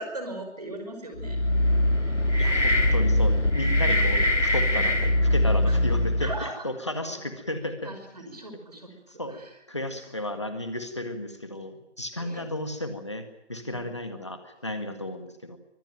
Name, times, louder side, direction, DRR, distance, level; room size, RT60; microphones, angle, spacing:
voice 1, 0.0-1.4 2.2-2.4 5.7-5.8 6.2-6.7 7.0-7.3 7.8-9.5 10.0-10.1 12.2-12.5 13.6-13.9, right 1 dB, 35° right, 5 dB, 5.2 m, -39 dB
sound 1, 1.2-6.5, left 1 dB, 80° left, 3.3 m, -22 dB
voice 2, 2.4-7.9 9.2-9.4 9.7-13.2 13.5-15.6, left 1 dB, 25° left, 7 dB, 1.8 m, -33 dB
24.5 x 17.5 x 9.2 m, 0.89 s
figure-of-eight pair, 175°, 36 cm